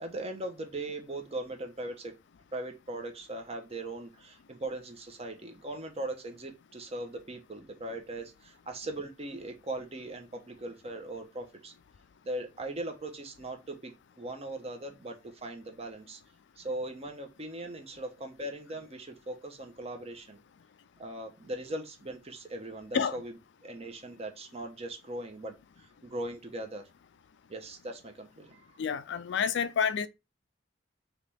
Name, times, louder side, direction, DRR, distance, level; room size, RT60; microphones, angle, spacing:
voice 1, 0.0-2.1 2.5-11.7 12.2-16.2 16.6-20.4 21.0-26.8 27.5-28.8, right 1 dB, 35° right, 0.9 m, -39 dB
voice 2, 28.8-30.1, left 6 dB, 65° left, 0.4 m, -28 dB
4.0 x 3.0 x 3.4 m
head